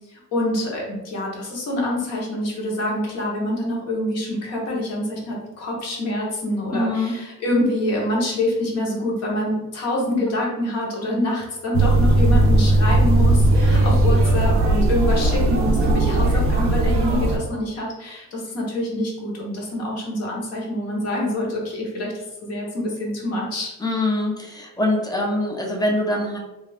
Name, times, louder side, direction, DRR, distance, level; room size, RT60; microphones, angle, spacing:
voice 1, 0.1-23.7, left 1 dB, 50° left, -2 dB, 0.9 m, -26 dB
voice 2, 6.7-7.2 23.8-26.4, left 1 dB, 15° left, 0 dB, 0.4 m, -23 dB
sound 1, 11.7-17.4, right 2 dB, 45° right, 0.5 m, -17 dB
2.4 x 2.3 x 3.2 m, 0.96 s
cardioid pair, 140°, 32 cm